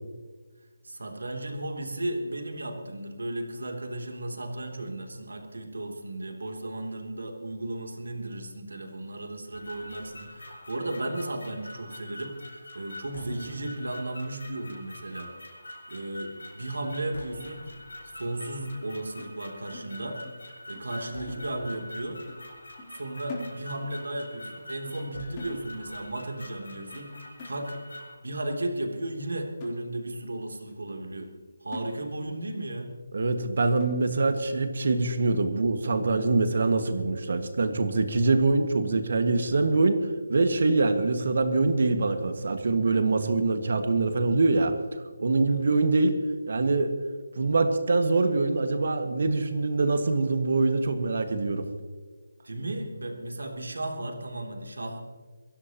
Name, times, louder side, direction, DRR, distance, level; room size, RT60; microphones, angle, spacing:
voice 1, 0.8-15.3 15.9-17.6 18.1-20.2 20.7-22.2 22.9-27.1 27.4-27.8 28.2-31.3 31.6-32.9 45.5-45.9 52.4-55.1, right 1 dB, 90° right, 3 dB, 3.0 m, -35 dB
sound 1, 9.5-28.1, left 1 dB, 90° left, 5.5 m, -45 dB
sound 2, 19.2-20.5 20.8-21.0 21.3-22.0 22.3-22.5 22.8-24.0 24.3-24.6 24.9-25.1 25.4-26.0 26.4-26.6 26.9-27.1 27.4-28.0 28.5-28.6 29.1-29.2 29.6-30.3 30.7-30.8 31.2-31.4 31.7-32.4 32.8-32.9 33.3-33.4 33.8-34.3 34.8-34.9 35.3-35.5, left 2 dB, 25° left, 3.5 m, -45 dB
voice 2, 33.1-46.2 46.5-46.9 47.4-51.7, right 3 dB, 55° right, 7 dB, 1.8 m, -24 dB
23.5 x 16.5 x 3.0 m, 1.4 s
figure-of-eight pair, 170°, 0 cm